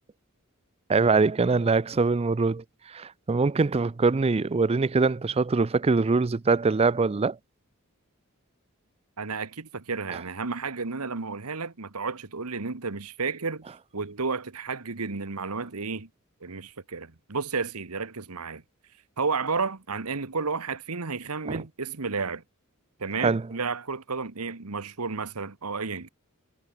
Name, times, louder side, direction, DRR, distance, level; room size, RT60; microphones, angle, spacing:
voice 1, 0.9-7.4 21.5-21.6 23.2-23.5, right 4 dB, 25° right, 0.4 m, -23 dB
voice 2, 9.2-13.6 13.9-16.1 16.4-18.6 19.2-22.4 23.0-26.1, right 4 dB, 80° right, 1.4 m, -32 dB
head